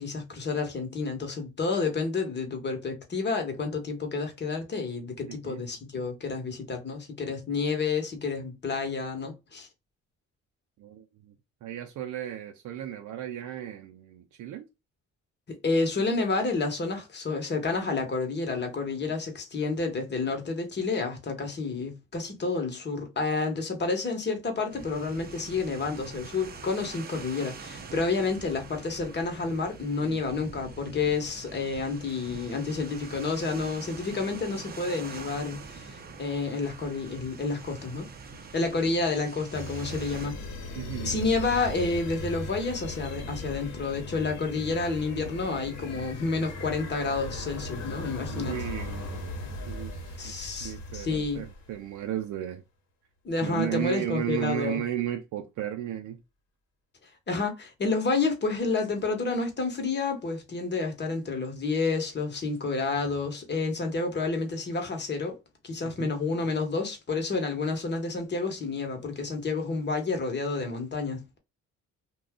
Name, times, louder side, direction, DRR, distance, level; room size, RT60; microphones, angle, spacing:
voice 1, 0.0-9.7 15.5-38.1 38.5-40.4 41.0-48.5 50.2-51.4 53.2-54.8 57.3-65.4 65.6-71.4, left 4 dB, 35° left, 1.1 m, -30 dB
voice 2, 5.3-5.6 10.8-11.3 11.6-14.7 30.0-30.4 38.8-38.9 40.7-41.1 48.3-50.3 50.6-52.6 53.4-56.2 65.8-66.1, right 11 dB, 75° right, 0.5 m, -34 dB
sound 1, 24.7-40.3, right 4 dB, 30° right, 0.6 m, -44 dB
sound 2, 39.5-51.8, left 1 dB, 65° left, 1.0 m, -38 dB
2.5 x 2.2 x 3.5 m
cardioid pair, 90°, 30 cm